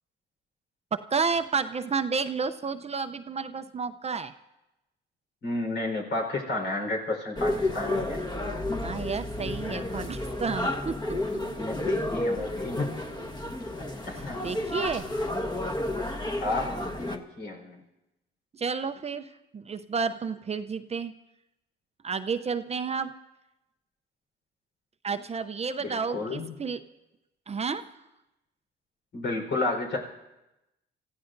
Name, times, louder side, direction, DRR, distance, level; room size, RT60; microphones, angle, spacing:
voice 1, 0.9-4.3 8.8-11.0 14.4-15.1 18.5-21.1 22.0-23.1 25.0-26.8 27.5-27.8, right 5 dB, 30° right, 10 dB, 0.6 m, -31 dB
voice 2, 5.4-8.3 11.0-12.9 13.8-14.4 16.4-17.8 25.8-26.5 29.1-30.0, left 2 dB, 65° left, 1 dB, 4.3 m, -32 dB
sound 1, 7.4-17.2, left 1 dB, 20° left, 1.3 m, -31 dB
28.0 x 15.0 x 2.6 m, 0.96 s
cardioid pair, 90°, 20 cm